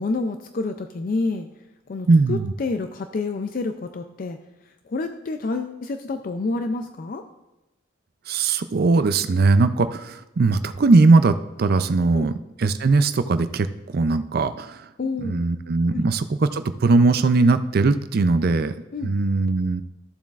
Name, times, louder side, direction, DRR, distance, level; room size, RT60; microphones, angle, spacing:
voice 1, 0.0-1.5 1.9-4.4 4.9-7.2 12.1-12.4 15.0-15.4 15.9-16.1 18.9-19.2, left 3 dB, 45° left, 7 dB, 0.4 m, -28 dB
voice 2, 2.1-2.5 8.3-13.7 13.9-14.8 15.2-16.3 16.5-18.7 19.0-19.8, right 3 dB, 50° right, 11 dB, 0.4 m, -19 dB
14.0 x 7.2 x 2.4 m, 1.0 s
head